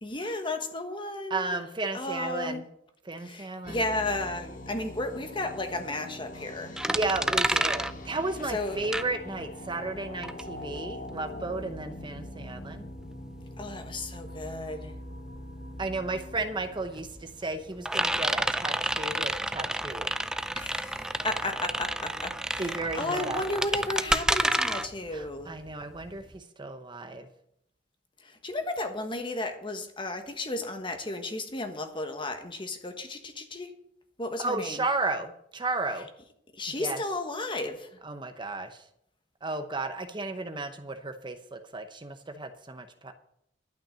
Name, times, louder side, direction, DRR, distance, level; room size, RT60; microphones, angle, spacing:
voice 1, 0.0-1.6 1.9-2.6 3.2-6.8 8.5-8.8 13.6-15.0 20.5-25.6 28.2-33.7 34.2-34.8 36.5-37.9, left 2 dB, 25° left, 6 dB, 1.3 m, -34 dB
voice 2, 1.3-2.6 3.0-3.8 6.9-12.9 15.8-20.1 22.6-23.4 25.1-27.3 34.4-36.1 36.8-37.0 38.0-38.8 39.4-43.1, right 3 dB, 25° right, 8 dB, 0.8 m, -34 dB
sound 1, 3.6-17.7, left 1 dB, 50° left, 1.4 m, -43 dB
sound 2, 6.8-9.6 10.0-26.4, right 1 dB, 5° right, 0.4 m, -30 dB
11.5 x 5.9 x 8.7 m, 0.74 s
head